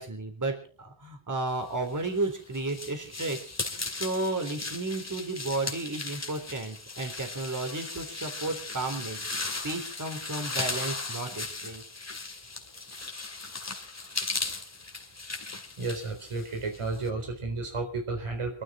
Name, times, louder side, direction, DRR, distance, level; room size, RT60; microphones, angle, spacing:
voice 1, 0.0-3.5 3.9-9.3 9.6-11.8, right 2 dB, 35° right, 5 dB, 3.8 m, -33 dB
sound 1, 1.9-17.1, left 3 dB, 30° left, 2.5 m, -37 dB
voice 2, 15.8-18.6, right 3 dB, 85° right, 4 dB, 4.2 m, -32 dB
26.0 x 12.5 x 3.8 m, 0.39 s
wide cardioid pair, 80°, 49 cm